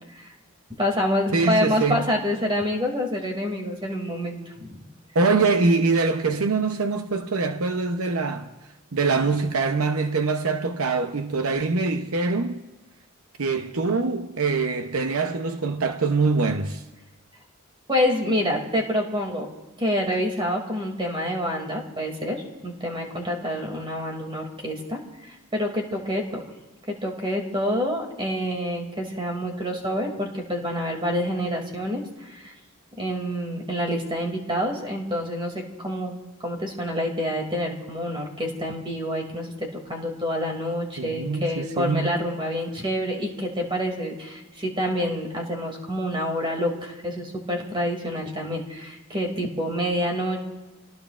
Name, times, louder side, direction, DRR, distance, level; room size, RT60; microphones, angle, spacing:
voice 1, 0.8-4.8 17.9-19.5 19.8-26.4 26.9-32.5 33.0-36.2 36.4-50.4, equal, 25° right, 2.5 m, -27 dB
voice 2, 1.3-2.1 5.1-8.5 8.9-12.6 13.4-16.8 41.0-42.1, right 4 dB, 85° right, 0.8 m, -24 dB
29.0 x 19.0 x 2.5 m
head